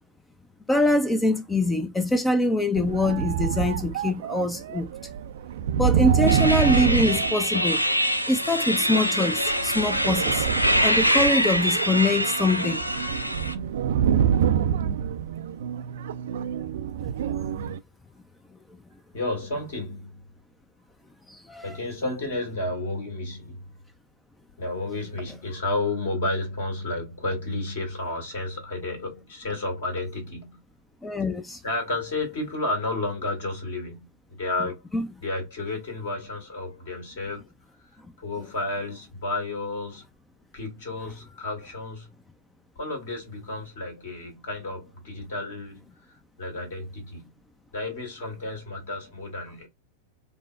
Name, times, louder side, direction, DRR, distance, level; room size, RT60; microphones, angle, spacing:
voice 1, 0.7-4.9 5.8-7.8 8.3-10.5 10.8-12.8 21.3-21.8 31.0-31.6 34.9-35.1, left 2 dB, 10° left, 0.4 m, -24 dB
sound 1, 2.7-8.1 8.9-17.8, right 8 dB, 60° right, 0.3 m, -27 dB
sound 2, 6.3-13.5, equal, 90° left, 0.4 m, -24 dB
voice 2, 19.1-20.2 21.6-23.6 24.6-30.6 31.6-34.8 35.2-37.5 37.8-40.0 40.5-42.1 42.8-47.3 47.7-49.7, left 2 dB, 55° left, 1.9 m, -32 dB
5.1 x 2.0 x 2.3 m
figure-of-eight pair, 90°, 0 cm